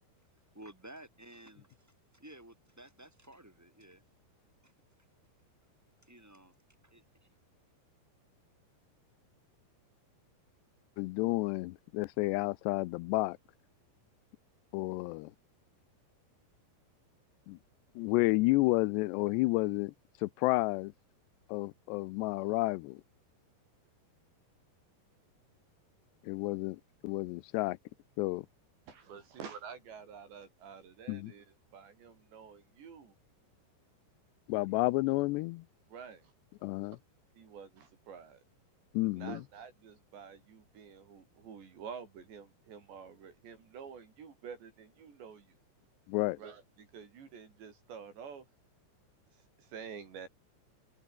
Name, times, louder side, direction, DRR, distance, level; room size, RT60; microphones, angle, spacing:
voice 1, 0.5-1.7 2.1-4.0 4.6-4.7 6.0-6.5 6.8-7.0, right 1 dB, 5° right, 5.6 m, -53 dB
voice 2, 11.0-13.4 14.7-15.3 17.5-17.6 18.0-19.9 20.2-20.9 21.5-23.0 26.2-27.8 28.2-28.5 31.1-31.3 34.5-35.6 36.6-37.0 38.9-39.3 46.1-46.4, left 21 dB, 90° left, 2.8 m, -31 dB
voice 3, 28.9-33.2 34.7-34.8 35.9-36.3 37.4-38.4 39.2-45.6 46.4-48.5 49.3-50.3, right 6 dB, 85° right, 6.9 m, -49 dB
omnidirectional pair, 4.9 m